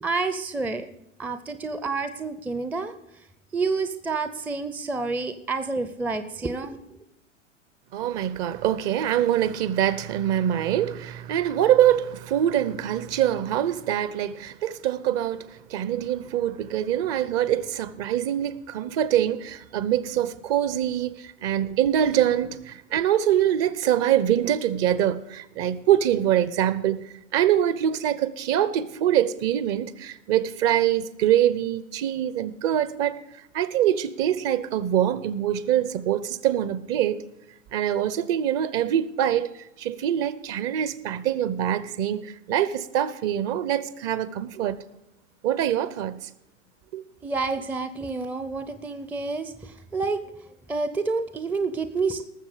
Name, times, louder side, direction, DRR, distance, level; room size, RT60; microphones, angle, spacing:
voice 1, 0.0-0.9 1.2-2.9 3.5-6.8 47.2-50.2 50.7-52.2, right 4 dB, 5° right, 0.5 m, -29 dB
voice 2, 7.9-33.2 33.5-37.2 37.7-39.5 39.8-44.8 45.4-46.3 46.9-47.0, right 11 dB, 40° right, 0.8 m, -24 dB
19.0 x 7.1 x 5.0 m
hypercardioid pair, 100°, 39 cm